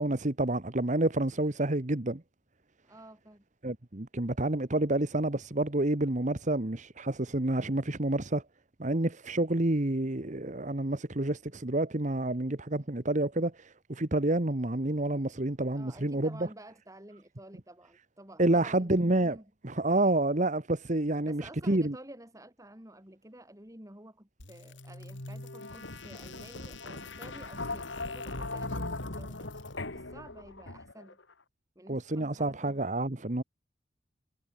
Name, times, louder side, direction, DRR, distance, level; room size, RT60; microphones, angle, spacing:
voice 1, 0.0-2.2 3.6-8.4 8.8-16.3 18.4-19.4 19.6-21.9 31.9-33.4, right 2 dB, 40° right, 1.4 m, -29 dB
voice 2, 2.8-3.4 15.7-19.4 21.2-31.2 31.8-32.9, right 1 dB, 15° right, 4.2 m, -51 dB
sound 1, 24.4-31.1, left 2 dB, 80° left, 3.4 m, -39 dB
head